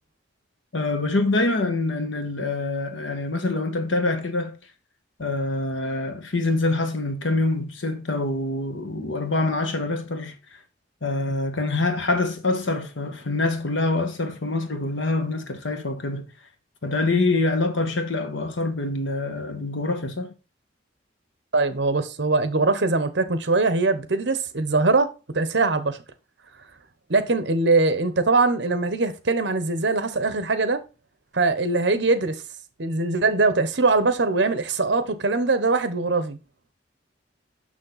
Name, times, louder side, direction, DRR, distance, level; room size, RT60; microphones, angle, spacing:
voice 1, 0.7-4.6 5.2-10.4 11.0-16.3 16.8-20.3, left 2 dB, 85° left, 1.3 m, -25 dB
voice 2, 21.5-26.0 27.1-30.8 31.3-32.4 32.8-36.4, right 3 dB, 65° right, 0.9 m, -22 dB
6.4 x 6.3 x 4.0 m
head